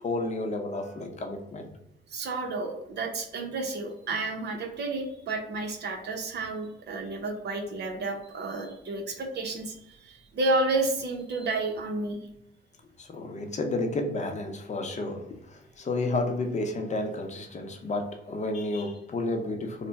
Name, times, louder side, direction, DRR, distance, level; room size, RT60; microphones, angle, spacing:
voice 1, 0.0-1.7 13.0-19.9, left 2 dB, 35° left, 3 dB, 0.8 m, -31 dB
voice 2, 2.1-12.2, right 2 dB, 60° right, 3 dB, 0.8 m, -31 dB
3.3 x 2.2 x 4.1 m, 0.81 s
cardioid pair, 90°, 20 cm